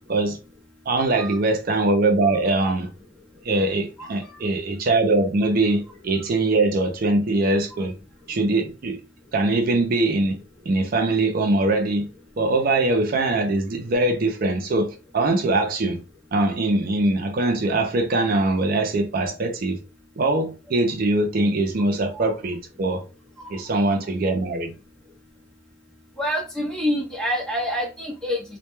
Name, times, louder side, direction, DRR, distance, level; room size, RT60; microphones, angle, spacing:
voice 1, 0.9-2.9 3.4-7.9 8.3-9.0 9.3-10.4 10.7-12.1 12.4-16.0 16.3-19.8 20.2-23.0 23.5-24.7, right 2 dB, 50° right, 0.4 m, -22 dB
voice 2, 4.0-4.4 22.1-22.3 23.4-23.5 26.2-28.4, equal, 5° left, 0.7 m, -27 dB
2.2 x 2.1 x 2.9 m
head